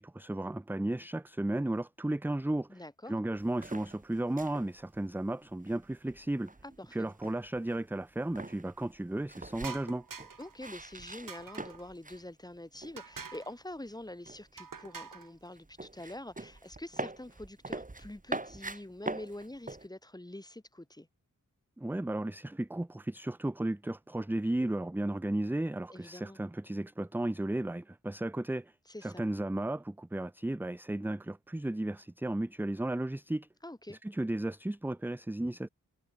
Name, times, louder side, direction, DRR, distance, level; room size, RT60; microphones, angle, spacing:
voice 1, 0.0-2.8 3.1-6.5 6.9-10.0 21.8-28.7 29.0-33.5 33.9-35.7, right 1 dB, 5° right, 0.5 m, -34 dB
voice 2, 2.7-3.2 6.6-7.1 10.4-21.1 25.9-26.4 28.9-29.3 33.6-34.0, left 1 dB, 10° left, 1.8 m, -45 dB
sound 1, 3.4-12.3 12.5-13.4 13.7-19.9, right 2 dB, 25° right, 2.0 m, -43 dB
sound 2, 9.6-10.6 11.3-11.9 13.0-13.5 14.6-15.3, right 5 dB, 75° right, 3.0 m, -45 dB
wide cardioid pair, 95°, 33 cm